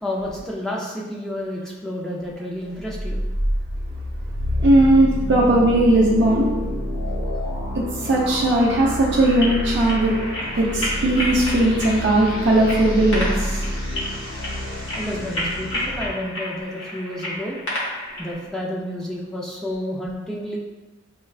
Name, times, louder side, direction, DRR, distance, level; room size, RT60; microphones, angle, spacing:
voice 1, 0.0-3.2 15.0-17.6 18.2-20.6, left 1 dB, 5° left, -4 dB, 0.4 m, -30 dB
sound 1, 2.8-16.1, equal, 80° left, 1.1 m, -28 dB
voice 2, 4.6-6.5 7.8-10.1 10.5-13.6, right 1 dB, 55° right, -3 dB, 0.5 m, -18 dB
sound 2, 9.2-18.3, left 1 dB, 60° left, 1.1 m, -31 dB
5.6 x 2.2 x 2.3 m, 1.2 s
head